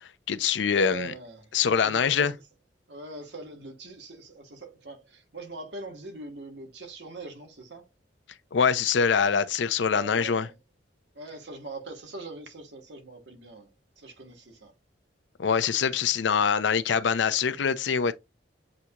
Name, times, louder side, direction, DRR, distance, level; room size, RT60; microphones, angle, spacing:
voice 1, 0.0-1.1 1.5-2.3 8.5-10.5 15.4-18.1, left 6 dB, 90° left, 0.5 m, -24 dB
voice 2, 0.7-2.4 2.9-7.9 9.9-10.6 11.1-13.7 14.0-14.7, right 3 dB, 75° right, 1.2 m, -42 dB
7.6 x 2.8 x 2.2 m
head